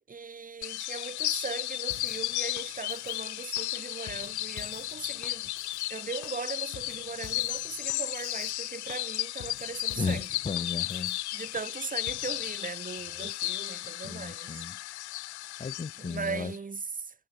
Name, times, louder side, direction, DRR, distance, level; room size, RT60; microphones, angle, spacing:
voice 1, 0.0-5.5 5.9-10.3 11.3-14.7 16.0-17.1, right 5 dB, 25° right, 2.0 m, -39 dB
sound 1, 0.6-16.6, left 16 dB, 80° left, 0.5 m, -34 dB
sound 2, 1.9-12.6, left 11 dB, 50° left, 3.5 m, -52 dB
voice 2, 10.0-11.2 13.1-13.3 14.0-14.8 15.6-16.5, left 5 dB, 20° left, 1.4 m, -35 dB
figure-of-eight pair, 50°, 33 cm